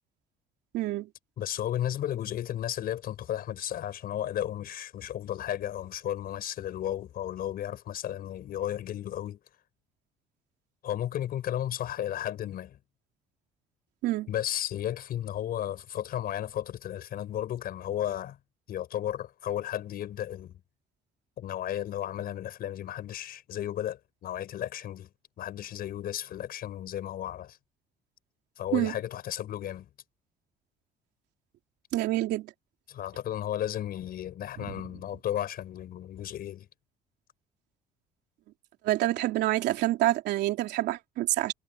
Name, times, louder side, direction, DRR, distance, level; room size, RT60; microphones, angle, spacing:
voice 1, 0.7-1.1 14.0-14.3 28.7-29.0 31.9-32.5 38.8-41.5, right 15 dB, 85° right, 3.3 m, -27 dB
voice 2, 1.4-9.4 10.8-12.8 14.3-18.4 18.7-20.6 21.4-25.1 25.4-27.6 28.6-29.9 32.9-36.7, left 11 dB, 60° left, 5.5 m, -34 dB
cardioid pair, 110°, 17 cm